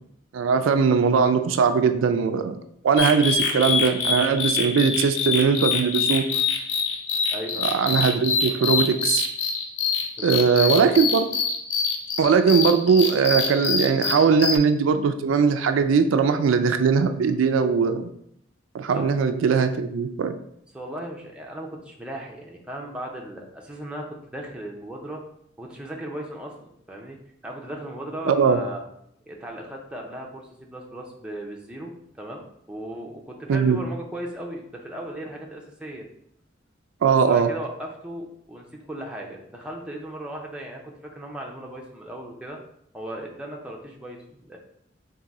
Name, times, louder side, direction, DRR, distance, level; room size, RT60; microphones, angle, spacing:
voice 1, 0.3-2.6 2.8-6.3 7.6-9.3 10.2-11.3 12.2-18.1 18.7-20.4 28.2-28.6 33.5-33.8 37.0-37.5, right 5 dB, 90° right, 8 dB, 0.4 m, -20 dB
sound 1, 3.0-14.6, left 5 dB, 70° left, 0.6 m, -25 dB
voice 2, 10.2-10.7 18.9-19.2 20.7-25.2 25.6-27.2 27.4-28.8 29.3-31.9 32.2-36.1 37.1-42.6 42.9-44.6, right 1 dB, 5° right, -1 dB, 0.5 m, -37 dB
3.7 x 2.6 x 4.1 m, 0.72 s
head